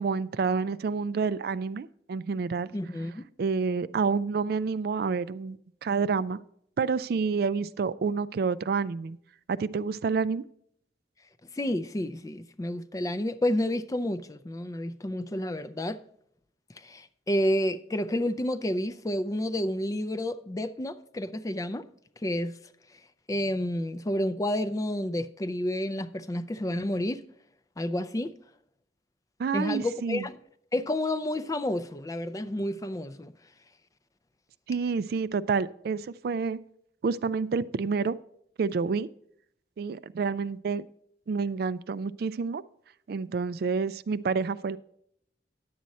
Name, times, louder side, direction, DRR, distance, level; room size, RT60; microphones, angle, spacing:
voice 1, 0.0-2.7 3.4-6.4 6.8-9.2 9.5-10.4 29.4-30.3 34.7-36.6 37.0-38.2 38.6-39.1 39.8-40.8 41.3-42.6 43.1-44.8, right 5 dB, 60° right, 0.3 m, -28 dB
voice 2, 2.7-3.2 11.5-16.0 16.8-21.9 22.2-22.5 23.3-27.2 27.8-28.4 29.5-30.4 30.7-33.3, left 1 dB, 20° left, 0.4 m, -30 dB
10.5 x 7.6 x 4.1 m
head